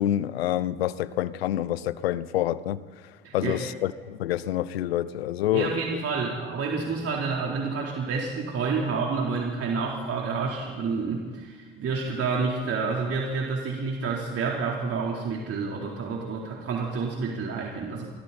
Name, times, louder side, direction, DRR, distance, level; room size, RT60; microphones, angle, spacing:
voice 1, 0.0-2.8 3.3-5.7, left 13 dB, 85° left, 0.8 m, -27 dB
voice 2, 3.2-3.6 5.5-18.1, right 4 dB, 50° right, 4.0 m, -29 dB
29.0 x 24.0 x 4.4 m
hypercardioid pair, 60°, 30 cm